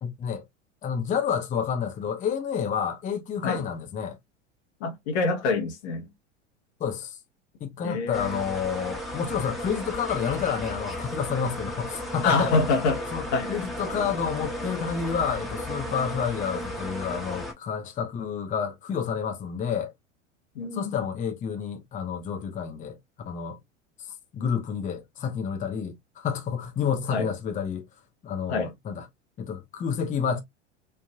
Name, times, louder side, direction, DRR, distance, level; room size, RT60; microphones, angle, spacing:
voice 1, 0.0-0.4 0.8-4.2 6.8-7.2 7.6-12.6 13.1-19.9 20.7-23.0 23.3-23.6 24.3-27.9 28.2-29.1 29.4-30.4, left 7 dB, 20° left, 0.6 m, -29 dB
voice 2, 4.8-6.1 7.8-8.4 12.2-13.0 13.3-13.6 20.5-21.1 27.1-27.3 28.5-28.7, left 3 dB, 60° left, 0.9 m, -26 dB
sound 1, 8.1-17.5, equal, ahead, 1.0 m, -34 dB
3.2 x 2.4 x 2.2 m
hypercardioid pair, 85°, 37 cm